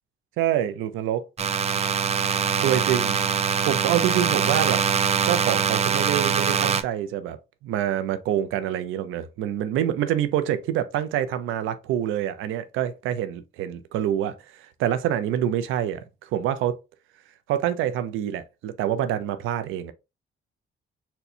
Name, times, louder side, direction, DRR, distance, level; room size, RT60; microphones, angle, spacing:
voice 1, 0.4-1.3 2.6-3.2 3.7-4.9 5.2-7.4 7.6-16.0 16.3-16.8 17.5-19.9, right 11 dB, 90° right, 0.5 m, -26 dB
sound 1, 1.4-6.8, right 7 dB, 35° right, 0.4 m, -23 dB
4.2 x 2.2 x 2.6 m
cardioid pair, 90°, 20 cm